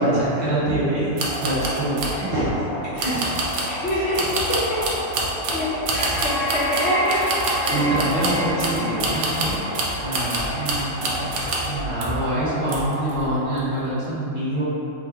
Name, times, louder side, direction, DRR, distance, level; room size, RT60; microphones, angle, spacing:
voice 1, 0.0-2.7 2.9-3.3 3.9-4.0 5.9-6.2 7.7-14.6, right 1 dB, 50° right, -11 dB, 1.4 m, -25 dB
sound 1, 1.2-13.4, equal, 90° left, 1.3 m, -30 dB
sound 2, 1.2-2.2 3.0-11.8 12.0-12.3 12.7-13.1 13.5-13.6, right 2 dB, 90° right, 1.1 m, -27 dB
voice 2, 3.6-4.9 5.5-7.8 8.1-8.7, left 1 dB, 55° left, -9 dB, 0.9 m, -26 dB
3.5 x 3.1 x 2.9 m, 2.9 s
omnidirectional pair, 1.5 m